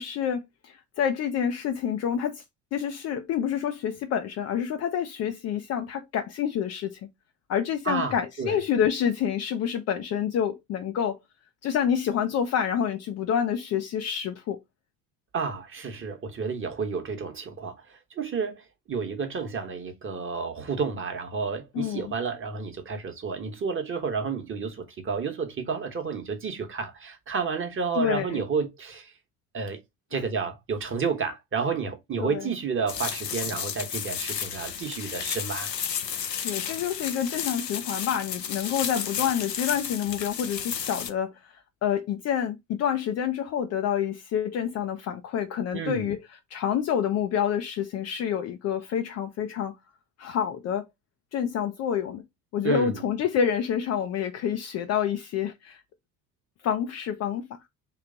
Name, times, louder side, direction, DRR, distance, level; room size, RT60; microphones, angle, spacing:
voice 1, 0.0-2.4 2.7-7.0 7.5-11.2 11.6-14.6 21.7-22.1 28.0-28.4 30.1-30.2 32.2-32.5 36.3-41.5 41.8-46.2 46.5-49.7 50.2-50.9 51.3-52.2 52.5-55.8 56.6-57.5, left 8 dB, 35° left, 0.5 m, -28 dB
voice 2, 7.8-8.6 15.3-29.1 29.5-29.8 30.1-35.7 45.7-46.1 52.6-53.0, right 5 dB, 25° right, 1.2 m, -31 dB
sound 1, 32.9-41.1, left 8 dB, 85° left, 0.6 m, -32 dB
3.2 x 3.0 x 3.8 m
figure-of-eight pair, 60°, 48 cm